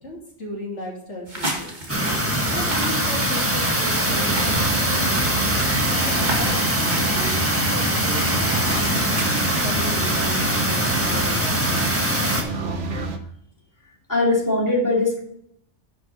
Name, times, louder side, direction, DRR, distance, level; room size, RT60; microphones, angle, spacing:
voice 1, 0.0-1.7 2.5-5.4 5.9-6.6 6.8-7.4 7.7-9.2 9.6-11.9, left 1 dB, 75° left, -3 dB, 3.4 m, -35 dB
sound 1, 1.3-9.9, right 1 dB, 40° right, 2.0 m, -34 dB
sound 2, 1.9-12.4, equal, 10° right, 1.4 m, -22 dB
sound 3, 4.1-13.2, right 3 dB, 80° right, 1.4 m, -29 dB
voice 2, 14.1-15.2, left 2 dB, 15° left, -3 dB, 2.9 m, -20 dB
11.0 x 6.4 x 4.1 m, 0.71 s
omnidirectional pair, 1.2 m